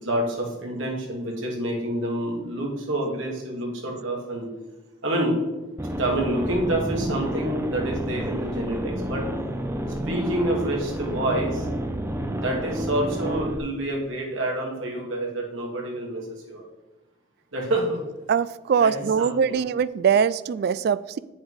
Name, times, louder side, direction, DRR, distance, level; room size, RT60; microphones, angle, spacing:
voice 1, 0.0-4.5 5.0-5.4 6.0-9.3 10.1-11.7 12.3-16.6 17.5-18.0 18.8-19.6, right 1 dB, 85° right, -1 dB, 2.4 m, -28 dB
sound 1, 5.8-13.6, equal, 15° right, 0.6 m, -30 dB
voice 2, 18.3-21.2, right 7 dB, 55° right, 16 dB, 0.3 m, -22 dB
8.1 x 7.2 x 4.9 m, 1.1 s
head